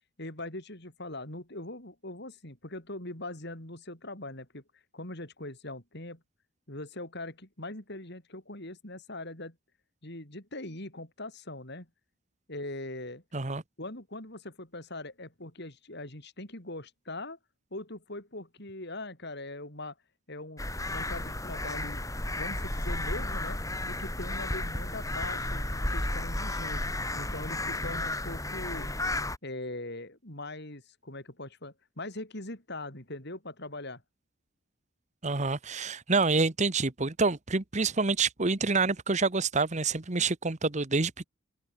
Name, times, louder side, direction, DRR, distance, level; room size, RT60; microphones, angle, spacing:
voice 1, 0.2-4.6 4.9-6.2 6.7-9.6 10.0-11.9 12.5-13.2 13.8-17.4 17.7-19.9 20.3-22.0 22.4-23.6 23.9-26.8 27.1-28.9 29.4-34.0, left 2 dB, 55° left, 6.1 m, -41 dB
sound 1, 20.6-29.4, left 1 dB, 15° left, 4.0 m, -33 dB
voice 2, 35.2-41.3, right 4 dB, 35° right, 1.2 m, -27 dB
head